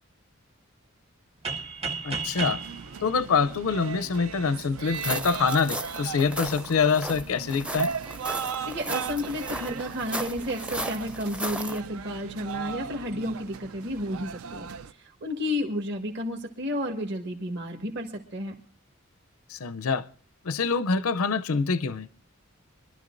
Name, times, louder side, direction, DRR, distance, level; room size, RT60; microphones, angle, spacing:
sound 1, 1.4-4.2, right 4 dB, 30° right, 0.9 m, -34 dB
voice 1, 2.0-2.6 3.0-7.9 19.5-20.1 20.4-22.2, left 5 dB, 80° left, 13 dB, 0.5 m, -25 dB
sound 2, 2.4-14.9, right 7 dB, 80° right, 0.5 m, -37 dB
sound 3, 4.9-11.8, right 1 dB, 5° right, 0.5 m, -36 dB
voice 2, 8.6-18.5, left 1 dB, 55° right, 1 dB, 1.6 m, -32 dB
24.5 x 12.0 x 2.6 m, 0.43 s
head